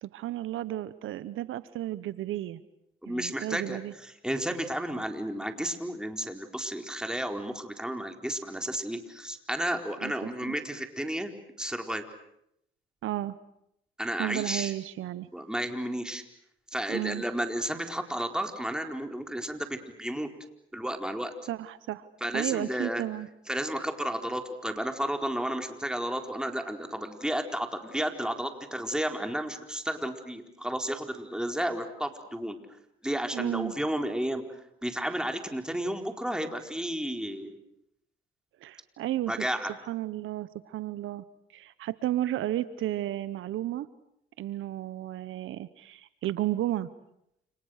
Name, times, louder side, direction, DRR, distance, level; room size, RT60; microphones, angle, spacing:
voice 1, 0.0-2.6 3.1-3.9 10.0-10.1 10.5-10.6 13.0-13.4 14.2-15.3 16.9-17.2 21.5-22.1 22.3-23.3 33.3-33.8 38.6-39.5 39.9-41.3 41.5-43.9 44.4-46.9, right 14 dB, 80° right, 16 dB, 1.1 m, -33 dB
voice 2, 3.0-12.0 14.0-14.7 15.3-16.2 16.7-20.3 20.7-21.3 22.2-23.0 23.5-32.6 33.0-37.6 39.3-39.7, right 1 dB, 5° right, 5 dB, 4.4 m, -32 dB
29.5 x 28.5 x 6.6 m, 0.77 s
supercardioid pair, 70°, 20 cm